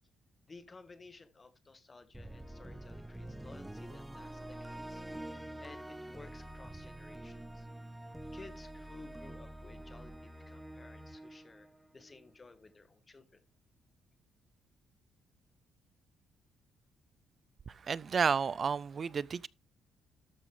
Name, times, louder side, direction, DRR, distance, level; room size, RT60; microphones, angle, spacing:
voice 1, 0.5-7.7 8.3-13.4, left 3 dB, 30° left, 1.3 m, -56 dB
sound 1, 2.1-12.3, right 1 dB, 5° right, 0.6 m, -47 dB
voice 2, 17.7-19.5, right 6 dB, 45° right, 0.3 m, -31 dB
13.0 x 6.1 x 3.2 m
cardioid pair, 90°, 0 cm